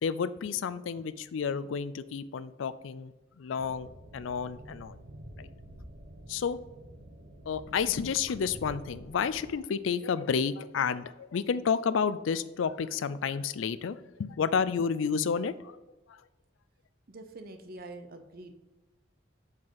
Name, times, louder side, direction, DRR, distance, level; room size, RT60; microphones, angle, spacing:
voice 1, 0.0-5.0 5.4-5.5 6.3-6.6 7.5-15.8 16.1-16.2, left 6 dB, 80° left, 15 dB, 0.4 m, -31 dB
sound 1, 3.6-9.5, right 1 dB, 70° right, 1.2 m, -48 dB
voice 2, 17.1-18.5, right 2 dB, 50° right, 7 dB, 0.8 m, -45 dB
7.5 x 4.4 x 3.9 m, 1.1 s
head